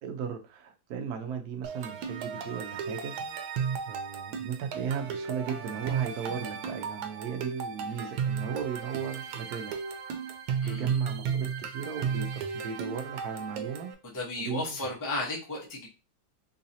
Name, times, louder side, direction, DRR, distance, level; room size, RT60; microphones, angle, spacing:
voice 1, 0.0-3.1 3.9-9.7 10.6-13.9 14.4-14.8, right 7 dB, 65° right, 5 dB, 1.0 m, -36 dB
sound 1, 1.6-13.9, right 7 dB, 85° right, 1.4 m, -34 dB
voice 2, 10.6-11.0 14.0-15.9, left 2 dB, 15° left, -3 dB, 0.6 m, -34 dB
3.9 x 2.7 x 2.6 m, 0.31 s
omnidirectional pair, 2.1 m